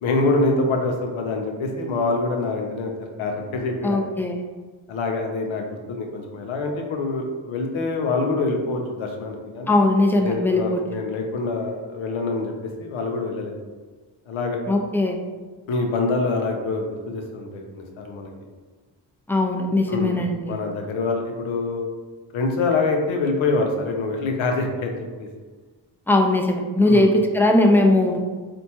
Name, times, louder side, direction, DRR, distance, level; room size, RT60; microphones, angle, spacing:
voice 1, 0.0-2.9 3.2-4.0 4.9-9.8 10.2-13.6 14.3-14.6 15.7-18.3 19.9-20.2 20.5-21.9 22.3-25.3 26.9-27.1, left 3 dB, 90° left, 2 dB, 0.6 m, -25 dB
voice 2, 3.8-4.4 9.7-10.8 14.7-15.2 19.3-20.5 26.1-28.2, left 2 dB, 5° left, 2 dB, 0.4 m, -19 dB
4.3 x 2.2 x 2.8 m, 1.4 s
cardioid pair, 50°, 46 cm